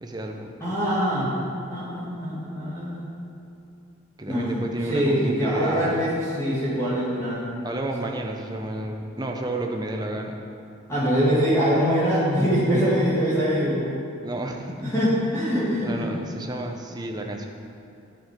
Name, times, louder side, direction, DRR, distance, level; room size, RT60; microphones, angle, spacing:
voice 1, 0.0-0.5 4.2-6.0 7.6-10.4 14.2-14.8 15.8-17.5, right 1 dB, 20° right, 2 dB, 0.7 m, -31 dB
voice 2, 0.6-1.4 1.7-3.0 4.3-7.5 10.9-14.0 14.8-16.1, equal, 15° left, -10 dB, 2.3 m, -23 dB
10.0 x 7.7 x 5.2 m, 2.6 s
head